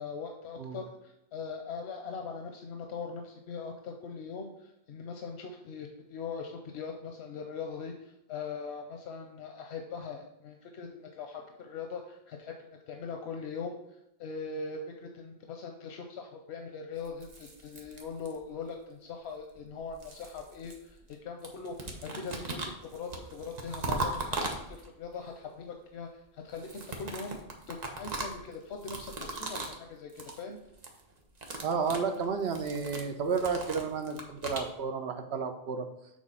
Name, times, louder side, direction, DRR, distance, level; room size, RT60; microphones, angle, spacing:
voice 1, 0.0-13.8 14.2-27.4 27.7-30.6, left 5 dB, 90° left, 3 dB, 0.9 m, -41 dB
sound 1, 17.0-18.6 19.6-21.2 21.4-25.1 26.5-29.8 30.1-30.4 30.7-31.0 31.3-34.7, right 2 dB, 45° right, 1.0 m, -39 dB
voice 2, 31.6-35.9, right 5 dB, 80° right, 6 dB, 1.0 m, -32 dB
6.4 x 3.7 x 5.5 m, 0.81 s
omnidirectional pair, 1.1 m